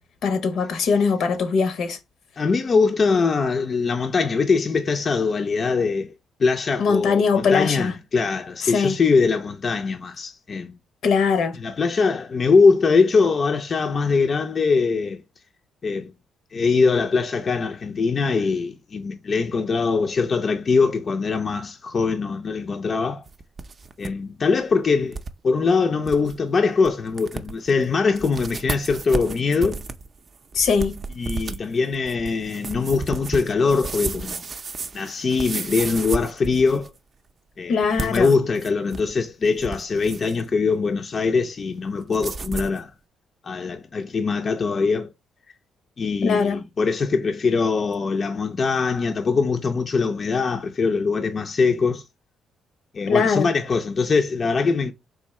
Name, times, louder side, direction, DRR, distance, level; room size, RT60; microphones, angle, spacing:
voice 1, 0.2-2.0 6.8-8.0 8.6-9.0 11.0-11.6 30.5-31.0 37.7-38.3 46.2-46.6 53.1-53.5, left 5 dB, 70° left, 0.8 m, -21 dB
voice 2, 2.4-6.1 6.4-10.7 11.6-15.2 15.8-16.1 16.5-23.2 24.0-29.8 30.5-30.6 31.2-34.5 34.9-36.9 37.6-42.9 43.4-45.1 46.0-52.0 52.9-54.9, left 4 dB, 45° left, 0.4 m, -22 dB
sound 1, 23.3-24.1 24.4-24.5 25.1-25.3 25.7-25.8 26.0-26.3 26.8-26.9 27.2-27.7 28.1-37.0 37.8-39.1 39.4-40.4 42.1-42.8, right 4 dB, 40° right, 0.5 m, -33 dB
3.6 x 2.7 x 4.2 m
cardioid pair, 90°, 0 cm